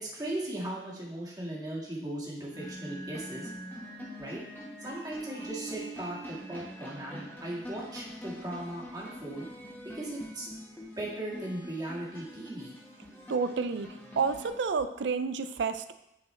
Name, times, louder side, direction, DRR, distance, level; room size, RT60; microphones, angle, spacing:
voice 1, 0.0-3.5 4.2-4.4 4.8-9.5 9.9-10.5 11.0-12.7, right 1 dB, 20° right, -5 dB, 1.8 m, -38 dB
sound 1, 2.5-14.5, right 1 dB, 10° left, 1.5 m, -44 dB
voice 2, 13.3-13.9 14.2-15.9, right 5 dB, 85° right, 11 dB, 0.4 m, -29 dB
9.8 x 4.5 x 3.3 m, 0.87 s
head